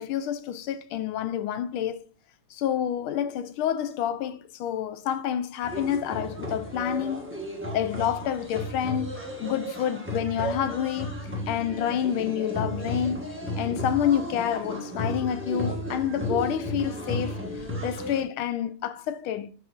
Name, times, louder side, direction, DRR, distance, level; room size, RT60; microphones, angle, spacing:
voice 1, 0.0-2.0 2.5-7.3 7.7-9.1 9.4-11.2 11.5-13.2 13.6-17.4 17.8-19.5, left 9 dB, 75° left, 1.4 m, -28 dB
sound 1, 5.6-18.2, equal, 10° right, 0.9 m, -34 dB
12.0 x 4.2 x 2.5 m
omnidirectional pair, 2.4 m